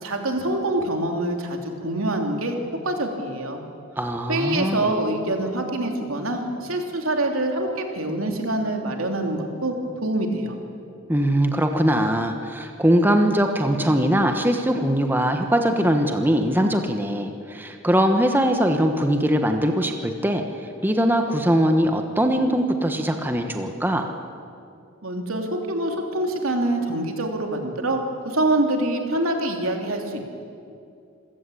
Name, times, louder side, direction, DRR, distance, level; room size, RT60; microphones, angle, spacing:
voice 1, 0.0-2.6 2.8-3.6 4.3-9.7 10.0-10.5 25.0-28.0 28.2-30.3, right 1 dB, 85° right, 3 dB, 3.0 m, -25 dB
voice 2, 4.0-4.8 11.1-20.4 20.8-24.1, equal, 10° right, 5 dB, 1.2 m, -21 dB
27.0 x 16.0 x 8.5 m, 2.5 s
head